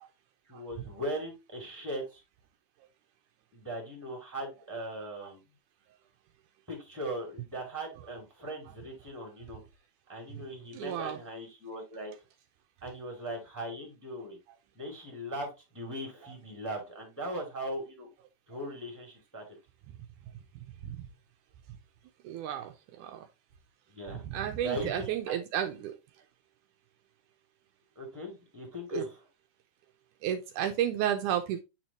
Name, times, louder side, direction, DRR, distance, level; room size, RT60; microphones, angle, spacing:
voice 1, 0.5-2.2 3.5-5.4 6.7-9.6 10.1-12.1 12.8-14.4 14.7-18.1 18.5-19.4 23.9-25.4 28.0-29.2, right 1 dB, 5° right, 2.1 m, -39 dB
voice 2, 10.7-11.2 20.6-21.1 22.2-23.3 24.2-25.9 28.9-29.1 30.2-31.6, right 10 dB, 80° right, 2.0 m, -32 dB
8.8 x 4.4 x 3.0 m
omnidirectional pair, 3.7 m